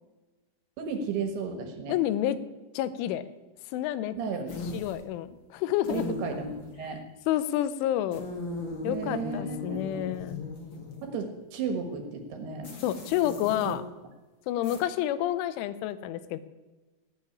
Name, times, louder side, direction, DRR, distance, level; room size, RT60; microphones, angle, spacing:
voice 1, 0.8-1.9 4.1-4.5 5.9-7.0 8.8-10.1 11.0-12.7 13.6-13.8, right 5 dB, 65° right, 5 dB, 3.1 m, -34 dB
voice 2, 1.9-2.4 2.7-3.2 3.7-4.2 4.7-6.1 7.3-8.3 8.8-10.5 12.8-13.8 14.5-16.4, left 12 dB, 90° left, 14 dB, 3.3 m, -29 dB
sound 1, 4.5-5.1 5.8-6.8 8.1-11.1 12.6-13.7 14.6-14.8, left 3 dB, 45° left, 1.7 m, -38 dB
17.0 x 7.5 x 9.9 m, 1.2 s
omnidirectional pair, 5.4 m